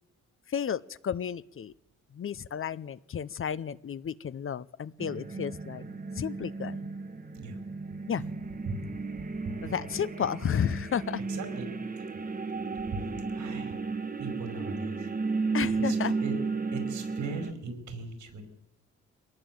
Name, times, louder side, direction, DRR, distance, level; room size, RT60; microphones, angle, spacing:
voice 1, 0.5-1.7 2.1-5.8 6.2-6.9 8.1-8.2 9.6-11.2 15.5-16.1, left 8 dB, 45° left, 17 dB, 0.7 m, -32 dB
sound 1, 5.0-17.5, right 4 dB, 30° right, 1.3 m, -34 dB
voice 2, 11.3-11.7 12.9-13.8 14.2-15.1 15.8-16.4 16.7-18.5, right 3 dB, 80° right, 6 dB, 5.2 m, -38 dB
22.5 x 18.5 x 7.7 m, 0.89 s
cardioid pair, 70°, 29 cm